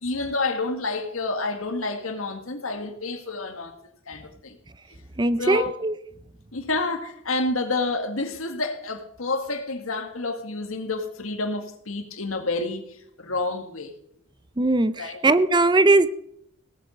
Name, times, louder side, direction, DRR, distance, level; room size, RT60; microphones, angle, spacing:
voice 1, 0.0-3.7 4.1-4.6 5.4-5.7 6.5-12.8 13.2-13.9 15.0-15.2, left 3 dB, 85° left, 5 dB, 2.0 m, -29 dB
voice 2, 5.2-6.0 14.6-16.1, right 2 dB, 20° right, 14 dB, 0.5 m, -20 dB
17.5 x 8.1 x 6.5 m, 0.69 s
head